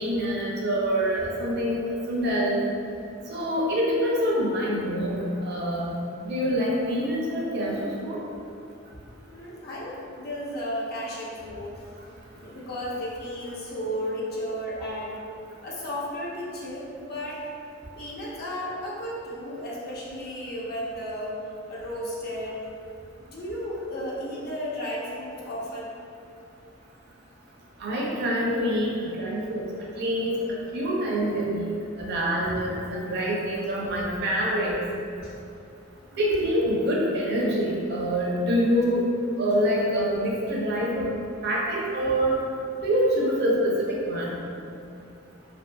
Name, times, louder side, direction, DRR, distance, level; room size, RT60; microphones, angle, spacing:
voice 1, 0.0-1.8 2.1-2.6 3.3-8.2 27.8-29.7 30.0-31.7 32.0-34.8 36.1-39.0 39.4-41.1 41.4-42.4 42.8-44.4, equal, 55° right, -4 dB, 0.5 m, -26 dB
voice 2, 9.3-11.8 12.3-15.2 15.6-17.4 18.0-21.4 21.7-22.6 23.3-26.0 35.2-35.3, equal, 55° left, -5 dB, 0.5 m, -34 dB
2.6 x 2.4 x 2.2 m, 2.5 s
head